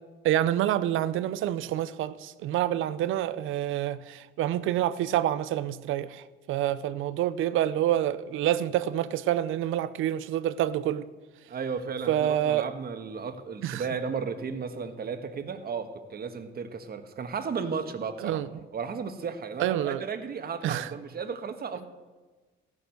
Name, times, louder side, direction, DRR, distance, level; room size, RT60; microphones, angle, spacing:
voice 1, 0.2-11.1 12.1-12.7 13.6-13.8 18.2-18.5 19.6-20.0 20.6-20.9, right 12 dB, 85° right, 0.6 m, -27 dB
voice 2, 11.5-18.4 18.7-21.8, right 5 dB, 50° right, 1.4 m, -34 dB
15.0 x 7.3 x 7.8 m
cardioid pair, 90°, 20 cm